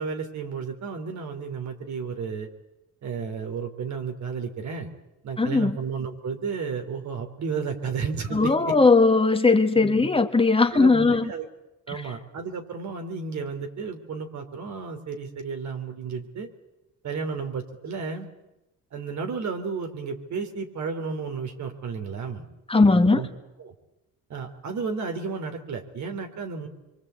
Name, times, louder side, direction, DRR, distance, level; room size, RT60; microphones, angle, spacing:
voice 1, 0.0-2.5 3.0-4.9 5.2-8.8 9.8-10.1 10.7-11.5 11.9-16.5 17.0-18.3 18.9-22.5 23.1-23.3 23.6-23.7 24.3-26.7, right 5 dB, 70° right, 5 dB, 3.8 m, -32 dB
voice 2, 5.4-5.8 8.3-11.3 11.9-12.0 22.7-23.2, left 3 dB, 20° left, 4 dB, 1.8 m, -19 dB
25.0 x 23.5 x 8.4 m, 0.95 s
cardioid pair, 90°, 30 cm